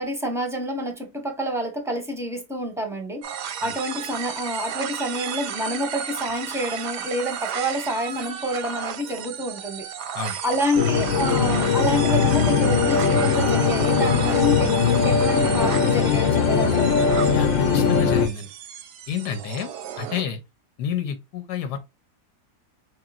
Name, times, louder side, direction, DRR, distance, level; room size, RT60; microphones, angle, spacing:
voice 1, 0.0-9.8 10.4-16.8, equal, ahead, 0.8 m, -28 dB
sound 1, 3.2-20.2, right 8 dB, 90° right, 1.2 m, -33 dB
sound 2, 10.8-18.3, left 5 dB, 60° left, 0.9 m, -20 dB
voice 2, 17.3-18.5 19.1-19.7 20.0-20.4 20.8-21.8, left 7 dB, 85° left, 1.3 m, -29 dB
4.8 x 2.9 x 2.4 m
omnidirectional pair, 1.7 m